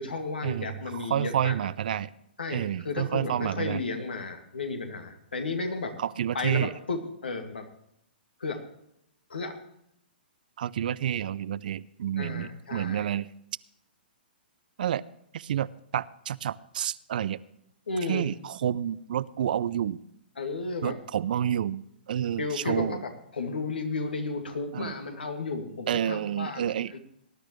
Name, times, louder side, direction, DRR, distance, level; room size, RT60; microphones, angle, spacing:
voice 1, 0.0-1.6 2.4-6.0 6.3-7.7 8.4-8.6 9.3-9.6 12.2-13.1 17.9-18.3 20.4-21.0 22.4-27.0, left 3 dB, 70° left, 5 dB, 2.2 m, -33 dB
voice 2, 1.1-2.1 2.5-3.8 6.0-6.7 10.6-13.3 14.8-15.0 15.3-17.4 18.1-20.0 20.8-23.0 24.7-24.9 25.9-26.9, right 10 dB, 55° right, 19 dB, 0.5 m, -29 dB
19.0 x 11.5 x 3.1 m, 0.77 s
figure-of-eight pair, 115°, 6 cm